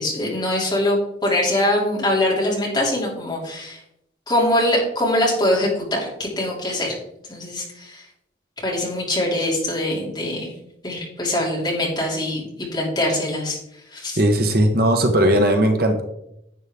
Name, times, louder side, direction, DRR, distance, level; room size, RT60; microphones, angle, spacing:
voice 1, 0.0-3.8 4.3-7.0 7.3-8.0 8.6-10.5 10.8-12.5 12.7-13.6 13.9-14.2, left 1 dB, 20° left, -3 dB, 2.9 m, -23 dB
voice 2, 14.2-16.0, right 1 dB, 50° right, 5 dB, 1.0 m, -17 dB
11.0 x 8.0 x 3.6 m, 0.80 s
head